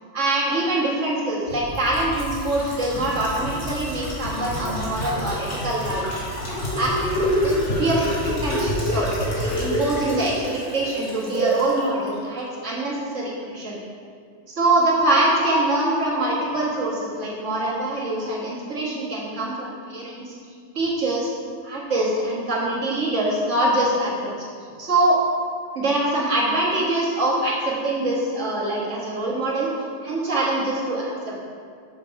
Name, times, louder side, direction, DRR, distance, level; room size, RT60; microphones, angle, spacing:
voice 1, 0.1-6.0 6.8-13.8 14.5-20.3 20.8-21.3 21.6-24.3 24.8-25.2 25.8-29.7 30.0-31.3, right 1 dB, 65° right, -5 dB, 2.1 m, -24 dB
Water Pouring Glugs, 1.5-11.8 12.1-12.2, equal, 65° left, 2.3 m, -27 dB
7.4 x 6.7 x 4.8 m, 2.1 s
omnidirectional pair, 1.4 m